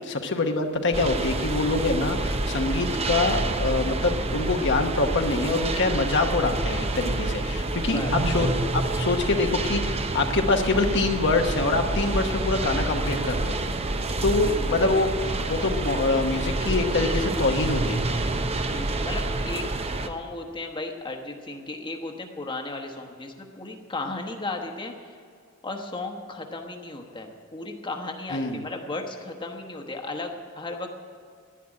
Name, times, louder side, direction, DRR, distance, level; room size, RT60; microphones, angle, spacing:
voice 1, 0.0-13.6 14.2-15.1 15.5-18.0 28.3-28.6, left 3 dB, 55° left, 4 dB, 1.0 m, -25 dB
sound 1, 0.9-20.1, right 2 dB, 30° right, 0.7 m, -28 dB
voice 2, 14.4-14.8 18.7-19.7 20.0-25.2 25.6-30.9, left 2 dB, 25° left, 3 dB, 1.1 m, -35 dB
11.0 x 10.5 x 9.7 m, 2.2 s
head